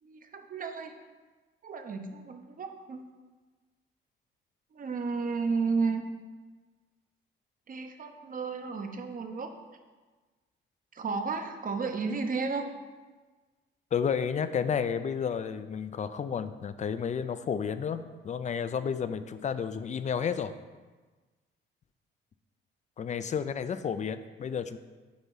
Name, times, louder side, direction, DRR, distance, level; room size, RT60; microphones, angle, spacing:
voice 1, 0.0-1.0 1.6-3.0 4.7-6.0 7.7-9.5 10.9-12.7, right 4 dB, 45° right, 5 dB, 0.8 m, -32 dB
voice 2, 13.9-20.5 23.0-24.8, left 7 dB, 35° left, 12 dB, 0.4 m, -31 dB
7.7 x 3.0 x 5.5 m, 1.3 s
cardioid pair, 90°, 20 cm